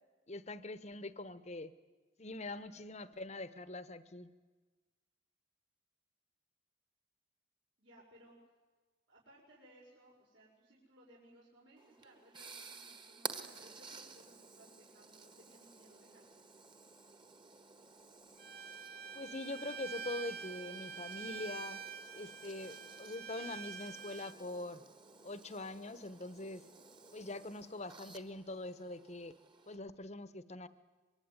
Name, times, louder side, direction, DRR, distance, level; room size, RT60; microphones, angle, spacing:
voice 1, 0.3-1.7 2.2-4.3 19.1-21.8 22.1-24.8 25.2-26.6 27.1-29.3 29.7-30.7, left 2 dB, 35° left, 14 dB, 1.0 m, -44 dB
voice 2, 7.8-8.4 9.1-16.3, right 1 dB, 65° right, -5 dB, 5.9 m, -62 dB
sound 1, 11.8-29.8, right 4 dB, 25° right, 1.6 m, -53 dB
Bowed string instrument, 18.4-24.3, right 5 dB, 50° right, 1.6 m, -46 dB
24.5 x 23.0 x 9.6 m, 1.3 s
head